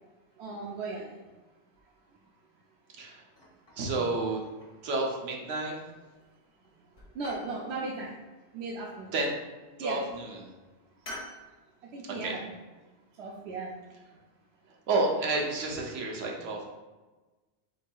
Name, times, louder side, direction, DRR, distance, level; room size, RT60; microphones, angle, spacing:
voice 1, 0.4-1.2 7.2-8.1 8.5-9.1 9.8-10.0 11.9-12.4 13.2-13.7, right 3 dB, 70° right, -3 dB, 0.9 m, -36 dB
sound 1, 3.3-4.1 4.5-5.1 5.9-6.4 6.6-7.6 9.0-9.5 9.9-10.1 11.0-11.4, left 1 dB, 55° left, 1.5 m, -46 dB
voice 2, 3.8-4.4 4.8-5.8 9.1-9.4 9.8-10.5 12.0-12.3 14.9-16.7, right 2 dB, 90° right, 0 dB, 1.1 m, -30 dB
7.8 x 2.7 x 2.3 m, 1.2 s
omnidirectional pair, 1.2 m